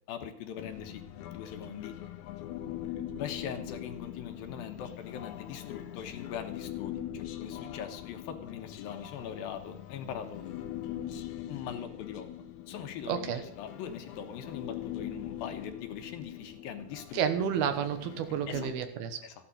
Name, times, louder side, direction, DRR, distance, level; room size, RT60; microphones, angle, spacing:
voice 1, 0.1-1.9 3.2-10.4 11.5-17.5 18.5-18.7 19.2-19.3, left 8 dB, 75° left, 6 dB, 2.7 m, -41 dB
Human voice, 0.6-18.7, left 11 dB, 90° left, 1.7 m, -42 dB
voice 2, 13.1-13.4 17.1-19.2, right 8 dB, 75° right, 8 dB, 3.0 m, -30 dB
14.5 x 11.5 x 5.2 m, 0.65 s
omnidirectional pair, 4.6 m